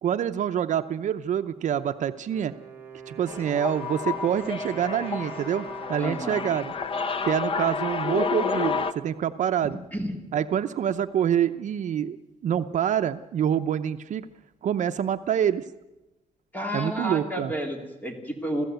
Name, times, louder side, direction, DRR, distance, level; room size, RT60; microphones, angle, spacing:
voice 1, 0.0-2.5 3.1-6.7 7.3-9.8 10.3-12.2 12.4-14.3 14.6-15.6 16.7-17.5, right 9 dB, 60° right, 9 dB, 0.7 m, -26 dB
Wind instrument woodwind instrument, 2.2-7.9, right 4 dB, 15° right, 2.3 m, -44 dB
sound 1, 3.3-8.9, left 5 dB, 40° left, 0.8 m, -30 dB
voice 2, 6.0-6.5 9.6-10.2 16.5-18.6, equal, 10° left, 3 dB, 3.2 m, -31 dB
26.5 x 16.0 x 8.1 m, 1.0 s
wide cardioid pair, 170°, 14 cm